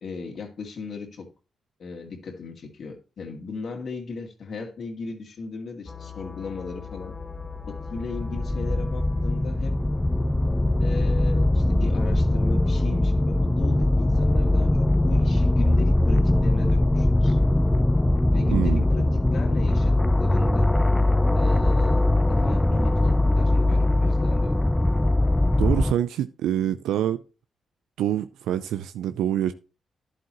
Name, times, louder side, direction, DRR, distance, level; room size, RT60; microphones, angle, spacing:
voice 1, 0.0-1.3 1.8-7.1 7.7-9.7 10.8-17.4 18.3-20.7 21.3-24.7, left 4 dB, 60° left, 2.2 m, -36 dB
sound 1, 5.9-23.3, left 6 dB, 25° left, 1.2 m, -39 dB
sound 2, 7.1-25.9, left 1 dB, 10° left, 0.4 m, -21 dB
voice 2, 18.5-18.8 25.6-27.2 28.0-29.5, right 11 dB, 80° right, 0.4 m, -25 dB
11.0 x 7.6 x 3.0 m
hypercardioid pair, 45°, 0 cm